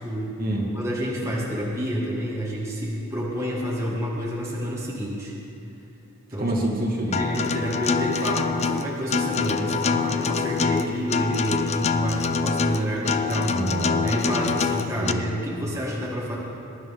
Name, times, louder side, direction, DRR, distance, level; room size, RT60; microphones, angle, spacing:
voice 1, 0.0-0.4 0.7-5.3 6.3-6.5 7.1-13.6 14.0-16.4, equal, 15° right, -5 dB, 1.9 m, -28 dB
voice 2, 6.4-7.2 13.4-14.1 15.0-15.3, right 1 dB, 40° right, -2 dB, 2.0 m, -27 dB
Acoustic guitar, 7.1-15.1, left 5 dB, 30° left, 0.4 m, -25 dB
21.5 x 11.5 x 3.7 m, 2.9 s
head